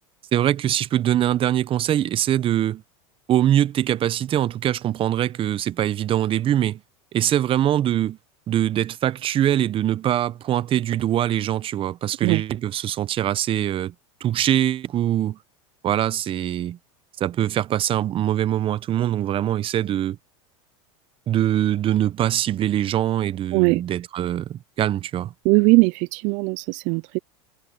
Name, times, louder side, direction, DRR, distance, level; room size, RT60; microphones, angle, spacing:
voice 1, 0.3-2.8 3.3-6.8 7.1-8.2 8.5-13.9 14.2-15.4 15.8-16.8 17.2-20.2 21.3-25.3, right 11 dB, 35° right, 0.9 m, -23 dB
voice 2, 23.5-23.8 25.4-27.2, right 27 dB, 50° right, 0.4 m, -19 dB
hypercardioid pair, 105°, 16 cm